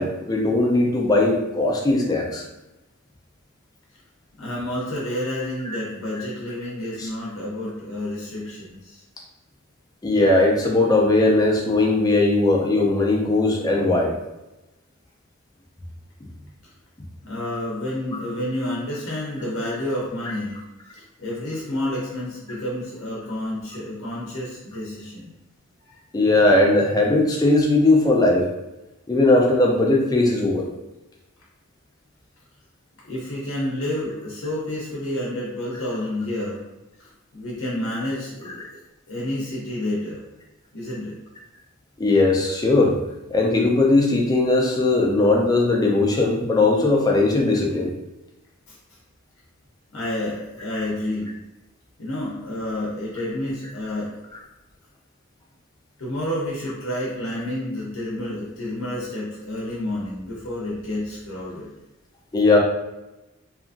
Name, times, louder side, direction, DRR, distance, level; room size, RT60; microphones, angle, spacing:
voice 1, 0.0-2.4 5.7-5.8 7.0-7.1 10.0-14.1 18.1-18.2 26.1-28.5 29.1-30.7 42.0-43.0 43.3-47.9 62.3-62.6, left 2 dB, 20° left, -1 dB, 0.4 m, -19 dB
voice 2, 4.4-9.0 17.2-20.6 20.9-25.3 25.8-26.0 33.0-36.6 37.3-38.6 39.1-40.2 40.7-41.1 48.7-48.8 49.9-51.3 52.0-54.2 56.0-61.7, left 1 dB, 65° left, -5 dB, 0.7 m, -29 dB
2.8 x 2.5 x 2.4 m, 0.99 s
head